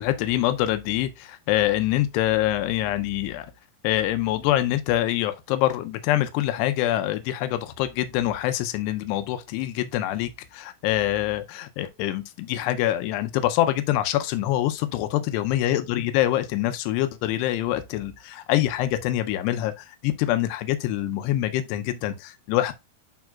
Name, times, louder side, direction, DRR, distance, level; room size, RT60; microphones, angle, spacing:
voice 1, 0.0-3.5 3.8-15.1 15.3-22.7, left 13 dB, 90° left, 2.8 m, -25 dB
10.5 x 4.7 x 2.4 m
omnidirectional pair, 4.7 m